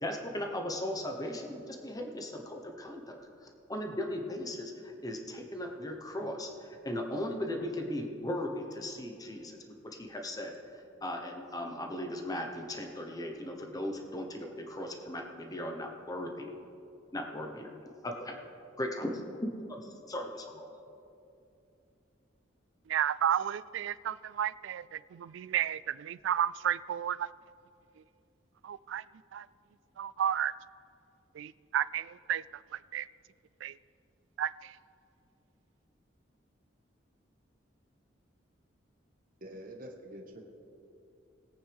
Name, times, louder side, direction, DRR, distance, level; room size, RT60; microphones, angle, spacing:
voice 1, 0.0-4.7 5.0-9.6 9.8-16.6 17.1-17.7 18.0-18.4 18.8-19.2 19.7-19.8 20.1-20.7, left 1 dB, 20° left, 3 dB, 1.1 m, -37 dB
voice 2, 22.9-27.3 28.6-29.0 29.3-29.5 30.0-30.5 31.3-33.1 33.6-33.8 34.4-34.8, right 10 dB, 80° right, 18 dB, 0.3 m, -32 dB
voice 3, 39.4-40.5, right 1 dB, 50° right, 2 dB, 1.4 m, -46 dB
21.0 x 8.8 x 3.5 m, 2.7 s
head